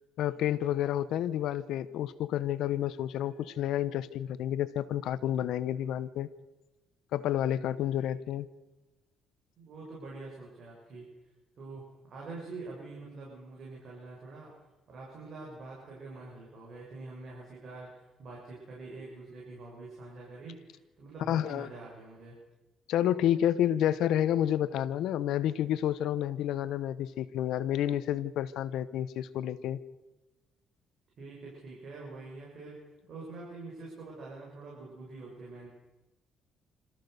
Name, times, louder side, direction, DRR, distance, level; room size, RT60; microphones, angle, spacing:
voice 1, 0.2-6.3 7.1-8.5 21.3-21.7 22.9-29.8, left 11 dB, 85° left, 15 dB, 1.0 m, -30 dB
voice 2, 9.6-11.0 11.6-11.8 12.1-14.5 14.9-22.4 31.2-32.8 33.1-35.7, right 3 dB, 60° right, -4 dB, 6.9 m, -45 dB
27.0 x 14.5 x 6.8 m, 1.1 s
cardioid pair, 90°, 0 cm